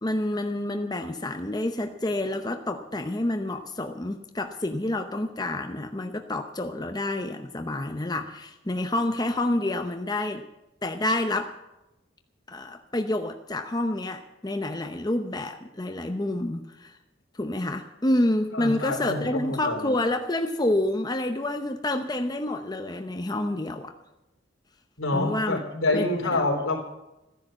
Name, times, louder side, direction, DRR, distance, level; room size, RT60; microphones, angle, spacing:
voice 1, 0.0-10.4 10.8-11.6 12.5-17.0 17.3-23.9 25.1-25.6 25.9-26.4, left 1 dB, 20° left, 5 dB, 0.7 m, -28 dB
voice 2, 18.5-20.0 25.0-26.8, left 2 dB, 85° left, 1 dB, 3.6 m, -27 dB
14.5 x 10.5 x 7.6 m, 0.97 s
head